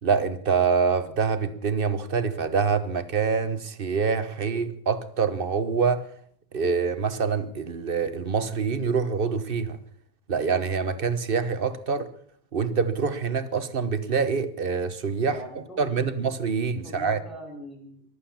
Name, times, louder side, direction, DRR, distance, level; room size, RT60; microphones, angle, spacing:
voice 1, 0.0-6.1 6.5-9.8 10.3-12.1 12.5-15.4 15.8-17.2, right 5 dB, 60° right, 1.3 m, -25 dB
voice 2, 15.3-16.0 16.6-18.0, equal, ahead, 7.0 m, -42 dB
23.5 x 8.4 x 7.2 m
omnidirectional pair, 1.1 m